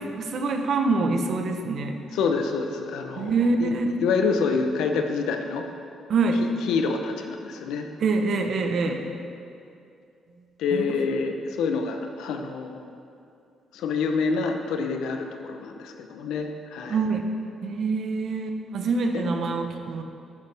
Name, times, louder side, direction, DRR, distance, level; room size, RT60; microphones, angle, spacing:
voice 1, 0.0-2.0 3.2-4.0 6.1-6.4 8.0-9.0 10.7-10.9 16.9-17.2 17.6-20.0, right 3 dB, 60° right, 5 dB, 1.0 m, -25 dB
voice 2, 2.1-3.3 3.6-3.7 4.0-5.6 6.7-7.9 8.8-8.9 10.6-12.8 13.7-17.0, left 5 dB, 85° left, 5 dB, 0.9 m, -27 dB
12.0 x 9.6 x 3.5 m, 2.5 s
cardioid pair, 90°, 0 cm